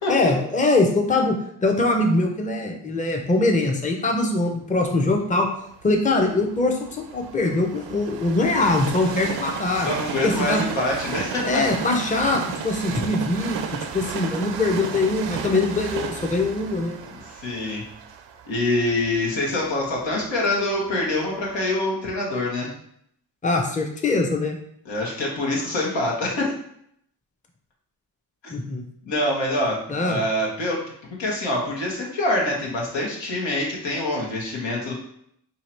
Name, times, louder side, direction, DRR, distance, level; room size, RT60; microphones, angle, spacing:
voice 1, 0.1-5.5 5.8-9.9 10.2-10.6 11.4-13.6 13.9-17.0 23.4-24.6 28.5-28.8 29.9-30.2, left 2 dB, 20° left, 2 dB, 0.6 m, -22 dB
Train, 5.0-21.0 21.6-21.7, right 7 dB, 75° right, 0.5 m, -34 dB
voice 2, 9.8-11.6 17.1-17.2 17.4-17.8 18.5-22.7 24.8-26.5 28.4-28.5 29.0-30.8 31.2-34.9, left 1 dB, 85° left, -3 dB, 1.3 m, -25 dB
2.8 x 2.8 x 4.3 m, 0.70 s
cardioid pair, 60°, 43 cm